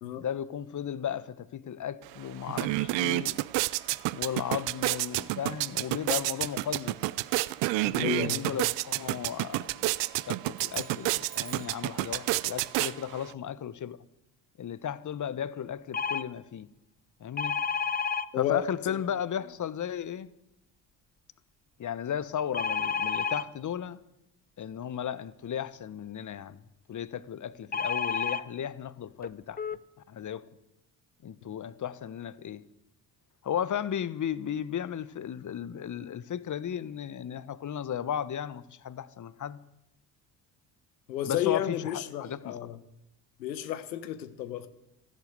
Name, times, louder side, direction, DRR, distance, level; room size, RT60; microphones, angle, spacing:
voice 1, 0.2-3.4 4.1-7.1 7.8-9.7 10.3-14.0 14.6-16.7 17.2-17.6 18.4-20.3 21.8-24.0 24.6-26.6 26.9-29.6 30.1-30.4 31.2-32.6 33.4-39.6 41.2-42.5, left 9 dB, 35° left, 1.1 m, -35 dB
sound 1, 2.0-2.1 2.4-13.3, right 19 dB, 60° right, 0.7 m, -30 dB
voice 2, 7.9-8.4 18.3-19.0 41.1-42.8 43.4-44.7, left 11 dB, 85° left, 1.2 m, -32 dB
sound 2, 10.5-11.9, right 6 dB, 40° right, 4.4 m, -49 dB
sound 3, 15.9-16.2 17.4-18.3 22.5-23.4 27.7-28.4 29.2-29.3 29.6-29.8, left 6 dB, 20° left, 0.8 m, -30 dB
14.5 x 12.0 x 8.1 m
hypercardioid pair, 55°, 50 cm